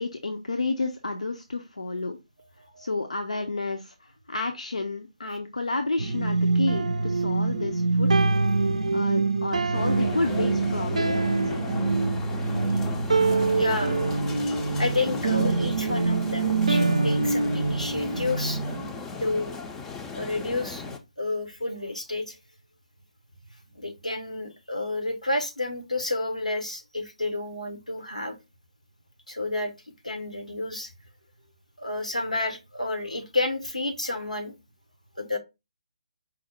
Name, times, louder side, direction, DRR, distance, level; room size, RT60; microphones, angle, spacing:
voice 1, 0.0-2.2 2.8-8.1 8.9-11.6, left 3 dB, 70° left, 0.5 m, -31 dB
sound 1, 6.0-18.9, right 3 dB, 65° right, 0.4 m, -25 dB
sound 2, 9.7-21.0, left 4 dB, 10° left, 0.4 m, -36 dB
voice 2, 13.5-14.0 14.8-18.6 19.2-19.6 20.1-20.9 21.2-22.4 23.8-28.4 29.3-29.7 30.0-30.9 31.8-34.5 35.2-35.4, left 2 dB, 90° left, 1.0 m, -30 dB
4.9 x 2.0 x 4.3 m
figure-of-eight pair, 140°, 4 cm